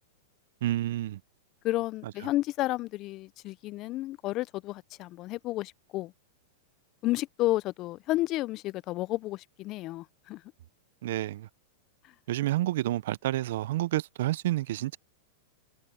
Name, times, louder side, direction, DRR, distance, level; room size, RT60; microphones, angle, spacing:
voice 1, 0.6-1.2 2.0-2.1 11.0-11.5 12.3-15.0, right 14 dB, 70° right, 0.6 m, -29 dB
voice 2, 1.6-6.1 7.0-10.4, left 17 dB, 40° left, 0.5 m, -31 dB
hypercardioid pair, 120°, 0 cm